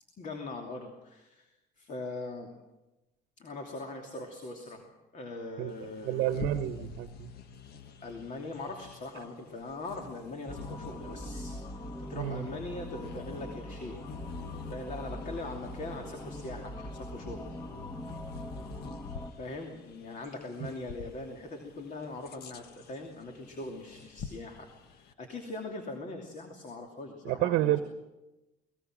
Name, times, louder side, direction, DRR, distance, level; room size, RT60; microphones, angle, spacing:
voice 1, 0.2-2.5 3.4-6.4 8.0-11.5 12.0-17.6 19.4-27.8, left 2 dB, 45° left, 3 dB, 2.9 m, -41 dB
Bird vocalization bird call bird song, 5.7-25.1, left 6 dB, 70° left, 1.4 m, -48 dB
voice 2, 6.0-7.3 12.1-12.5 27.2-27.8, right 14 dB, 90° right, 10 dB, 1.0 m, -29 dB
sound 1, 10.5-19.3, left 1 dB, 20° left, 1.6 m, -42 dB
24.0 x 19.5 x 6.2 m, 1.0 s
cardioid pair, 110°, 17 cm